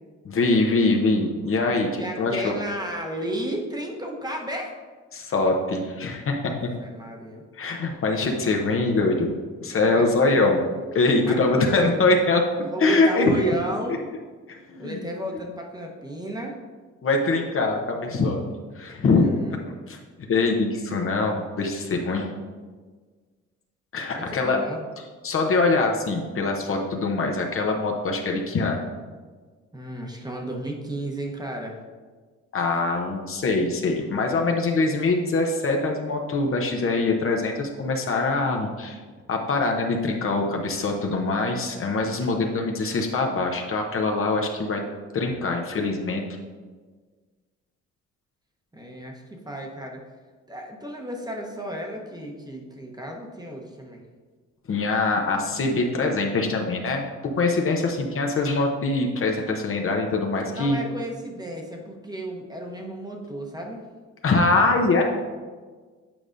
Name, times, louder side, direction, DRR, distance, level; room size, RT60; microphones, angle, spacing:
voice 1, 0.2-2.6 5.1-6.7 7.5-12.4 12.8-13.5 14.5-15.1 17.0-18.4 18.7-19.6 19.9-20.0 20.3-22.3 23.9-24.6 25.2-28.8 32.5-39.0 39.3-44.8 45.1-46.2 54.7-57.1 57.3-60.8 64.2-65.0, left 3 dB, 45° left, 2 dB, 0.8 m, -23 dB
voice 2, 2.0-4.7 6.4-7.4 9.9-10.6 11.2-12.0 12.6-14.0 14.8-16.6 19.1-19.6 24.2-24.8 29.7-31.8 48.7-50.0 50.5-54.0 60.5-63.8, right 1 dB, 15° right, 0 dB, 1.0 m, -33 dB
8.7 x 4.8 x 2.6 m, 1.4 s
cardioid pair, 90°, 30 cm